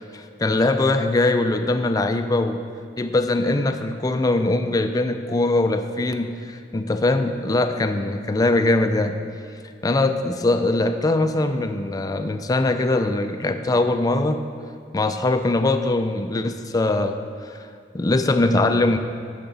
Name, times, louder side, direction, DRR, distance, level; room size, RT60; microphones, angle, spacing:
voice 1, 0.1-2.6 3.0-9.2 9.8-14.4 14.9-17.1 17.4-17.7 17.9-19.0, left 2 dB, 20° left, 7 dB, 0.4 m, -21 dB
10.0 x 5.8 x 4.0 m, 2.2 s
head